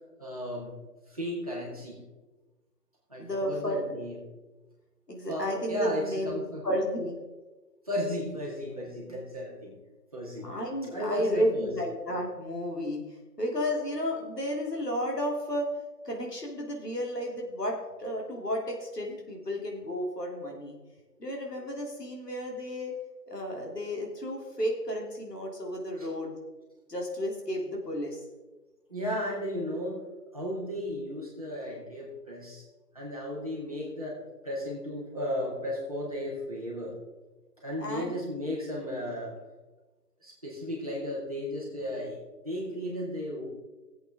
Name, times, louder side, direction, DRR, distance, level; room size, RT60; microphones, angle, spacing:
voice 1, 0.2-0.7 1.1-2.0 3.1-4.2 5.3-6.6 7.9-9.8 10.1-10.5 10.9-11.7 26.0-26.1 28.9-30.0 30.3-32.6 32.9-36.9 37.6-39.3 40.2-42.2 42.4-43.5, equal, 25° right, -5 dB, 2.1 m, -34 dB
voice 2, 3.2-4.0 5.1-7.1 9.1-9.2 10.4-15.7 16.0-20.8 21.2-22.9 23.3-26.3 26.9-28.2 37.8-38.1, equal, 75° left, 0 dB, 3.2 m, -32 dB
16.0 x 8.1 x 3.7 m, 1.2 s
figure-of-eight pair, 175°, 48 cm